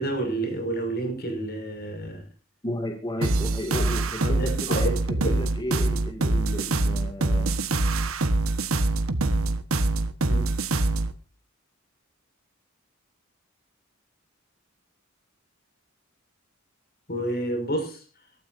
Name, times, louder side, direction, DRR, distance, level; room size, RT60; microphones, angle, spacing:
voice 1, 0.0-2.2 3.7-3.8 4.2-4.9 5.2-5.3 10.3-10.5 17.1-18.0, right 1 dB, 50° left, 6 dB, 5.8 m, -29 dB
voice 2, 2.6-7.5, left 1 dB, 20° left, 3 dB, 2.2 m, -33 dB
sound 1, 3.2-11.1, right 2 dB, 85° right, 1.3 m, -24 dB
22.5 x 13.5 x 2.7 m, 0.36 s
head